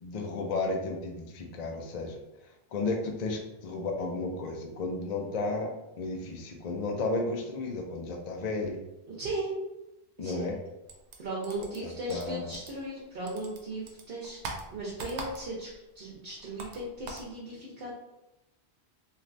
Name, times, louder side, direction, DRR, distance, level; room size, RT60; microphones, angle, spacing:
voice 1, 0.0-2.2 2.7-8.8 10.2-10.5 11.8-12.6, left 3 dB, 55° left, 2 dB, 0.5 m, -33 dB
voice 2, 9.1-9.6 10.2-10.6 11.2-14.4 14.7-15.7 15.9-17.9, right 2 dB, 60° right, -5 dB, 0.9 m, -37 dB
sound 1, 10.9-13.0 13.3-15.8 16.0-17.3, right 3 dB, 90° right, 0.9 m, -42 dB
3.2 x 2.5 x 2.5 m, 0.92 s
omnidirectional pair, 1.1 m